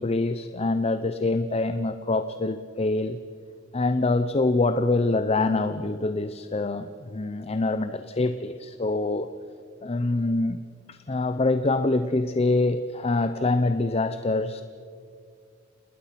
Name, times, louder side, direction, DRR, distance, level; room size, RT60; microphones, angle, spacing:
voice 1, 0.0-3.2 3.7-9.3 9.8-10.6 10.9-14.6, left 2 dB, 30° left, 11 dB, 0.6 m, -25 dB
28.5 x 20.0 x 5.9 m, 2.3 s
head